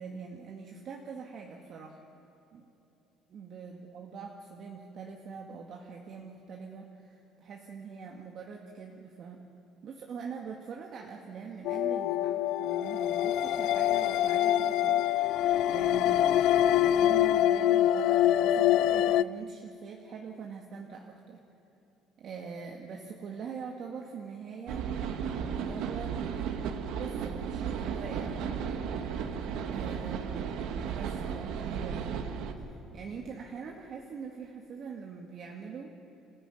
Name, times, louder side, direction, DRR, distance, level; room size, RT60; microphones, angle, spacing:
voice 1, 0.0-2.0 2.5-2.7 3.3-9.4 9.8-15.0 15.7-21.4 22.2-24.9 25.5-28.9 29.7-30.5 30.8-32.4 32.6-36.0, right 5 dB, 45° right, 1 dB, 1.8 m, -43 dB
sound 1, 11.6-19.2, left 12 dB, 65° left, 0.4 m, -25 dB
sound 2, 24.7-32.5, right 7 dB, 70° right, 1.7 m, -34 dB
26.0 x 15.5 x 9.6 m, 3.0 s
cardioid pair, 150°, 0 cm